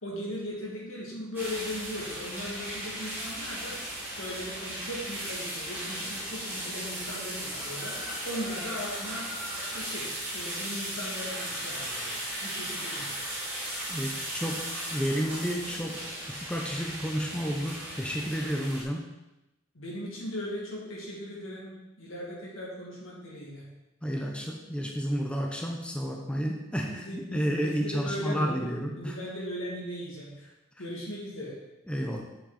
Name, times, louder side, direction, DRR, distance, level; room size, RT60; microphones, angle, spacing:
voice 1, 0.0-3.8 4.2-7.9 8.2-10.1 10.3-13.2 19.7-21.7 22.0-23.7 26.7-30.5 30.8-31.6, left 1 dB, 80° left, -4 dB, 2.5 m, -38 dB
sound 1, 1.3-18.8, right 1 dB, 10° right, 2.6 m, -36 dB
voice 2, 13.9-19.0 24.0-29.2 31.9-32.2, equal, 5° left, 0 dB, 0.6 m, -31 dB
7.5 x 5.9 x 4.2 m, 0.97 s
head